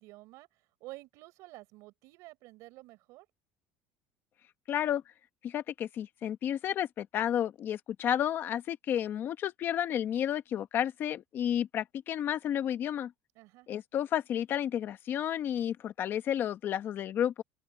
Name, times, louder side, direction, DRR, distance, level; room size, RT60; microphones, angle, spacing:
voice 1, 0.0-3.3 13.3-13.7, right 20 dB, 60° right, 5.0 m, -50 dB
voice 2, 4.7-5.0 5.4-13.1 13.7-17.4, left 10 dB, 40° left, 1.1 m, -31 dB
open air
cardioid pair, 155°, 6 cm